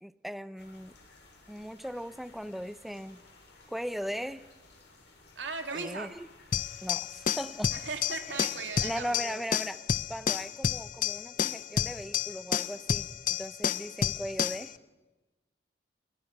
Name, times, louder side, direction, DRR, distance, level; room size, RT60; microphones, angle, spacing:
voice 1, 0.0-0.9 1.5-3.2 3.7-4.4 5.7-6.3 6.8-7.7 8.3-8.4 8.8-9.8 10.1-14.7, equal, ahead, 13 dB, 0.8 m, -38 dB
sound 1, 0.6-9.0, left 3 dB, 70° left, 6.8 m, -57 dB
voice 2, 5.4-6.1 7.7-9.4, right 4 dB, 80° right, 5 dB, 2.9 m, -38 dB
sound 2, 6.5-14.7, left 8 dB, 45° left, 0.7 m, -30 dB
30.0 x 23.0 x 6.1 m, 1.1 s
head